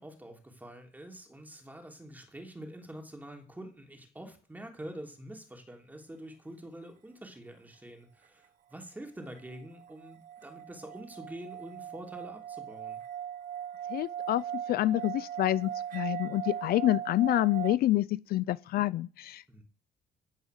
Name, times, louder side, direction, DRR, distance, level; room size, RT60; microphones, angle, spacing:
voice 1, 0.0-13.0 19.5-19.6, right 1 dB, 10° right, 3.2 m, -46 dB
sound 1, 9.4-17.8, right 10 dB, 50° right, 0.9 m, -39 dB
voice 2, 13.9-14.4 14.7-19.4, left 15 dB, 65° left, 0.5 m, -27 dB
16.0 x 5.5 x 6.4 m
cardioid pair, 110°, 17 cm